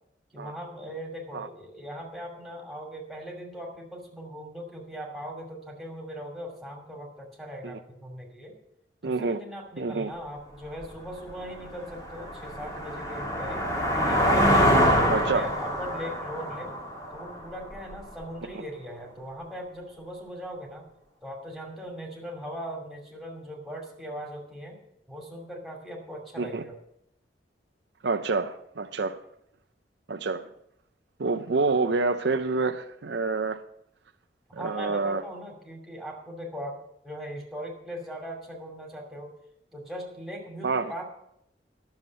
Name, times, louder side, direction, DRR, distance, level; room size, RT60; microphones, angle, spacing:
voice 1, 0.3-8.6 9.0-13.7 14.0-16.7 17.1-20.9 21.2-24.8 25.1-26.8 34.6-39.3 39.7-41.0, equal, ahead, -2 dB, 2.5 m, -39 dB
voice 2, 9.0-9.4 9.8-10.1 15.1-15.5 26.4-26.6 28.0-29.2 30.1-30.5 31.2-33.6 34.5-35.2 40.6-40.9, right 3 dB, 70° right, 8 dB, 0.6 m, -27 dB
sound 1, 10.8-10.9 11.4-18.0, equal, 20° left, 1.9 m, -25 dB
11.5 x 7.2 x 7.4 m, 0.76 s
head